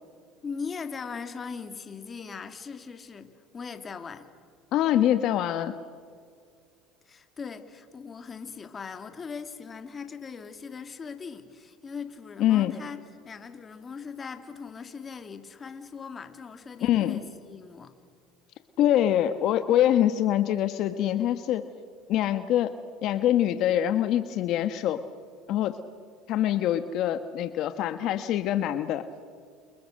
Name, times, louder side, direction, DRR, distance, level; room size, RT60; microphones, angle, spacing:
voice 1, 0.4-4.3 7.1-17.9, left 5 dB, 25° left, 8 dB, 2.5 m, -40 dB
voice 2, 4.7-5.7 12.4-12.7 16.8-17.2 18.8-21.6 22.1-22.7 23.0-25.0 25.5-25.8 26.3-29.0, left 11 dB, 60° left, 10 dB, 1.2 m, -24 dB
30.0 x 29.0 x 6.5 m, 2.2 s
supercardioid pair, 110°, 0 cm